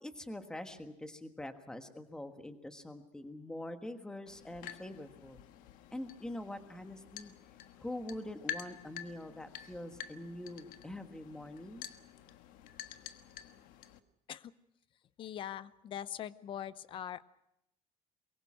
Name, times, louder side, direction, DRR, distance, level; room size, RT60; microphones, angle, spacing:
voice 1, 0.0-5.4 5.9-7.3 7.8-11.9, left 1 dB, 5° left, 7 dB, 1.4 m, -44 dB
sound 1, 4.3-14.0, left 10 dB, 85° left, 1.4 m, -48 dB
voice 2, 15.2-17.2, left 10 dB, 40° left, 16 dB, 0.8 m, -42 dB
23.0 x 23.0 x 6.3 m, 0.83 s
cardioid pair, 175°, 14 cm